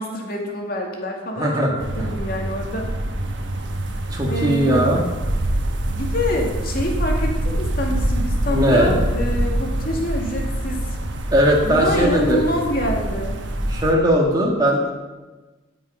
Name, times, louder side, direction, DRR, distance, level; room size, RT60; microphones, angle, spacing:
voice 1, 0.0-2.9 4.3-4.8 5.9-11.0 11.6-13.5, equal, 50° left, 0 dB, 2.2 m, -26 dB
voice 2, 1.4-1.7 2.0-2.1 4.1-5.0 8.5-8.9 11.3-12.4 13.7-14.9, equal, 20° right, -1 dB, 1.7 m, -19 dB
sound 1, 1.8-13.9, right 1 dB, 70° right, 1.1 m, -25 dB
17.5 x 6.1 x 5.3 m, 1.2 s
head